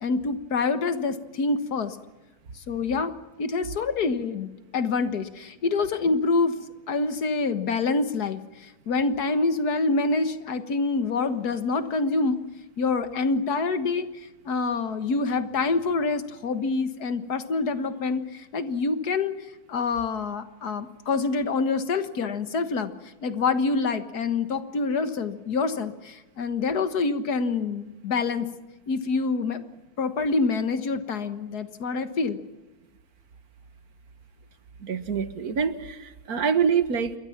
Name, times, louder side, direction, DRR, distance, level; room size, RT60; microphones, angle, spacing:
voice 1, 0.0-2.0 2.6-3.1 3.4-6.5 6.9-12.4 12.8-14.1 14.5-19.3 19.7-22.9 23.2-28.5 28.9-29.6 30.0-32.4, left 4 dB, 90° left, 10 dB, 2.0 m, -26 dB
voice 2, 34.8-37.2, right 6 dB, 75° right, 11 dB, 1.9 m, -25 dB
28.0 x 22.0 x 5.9 m, 1.1 s
omnidirectional pair, 1.6 m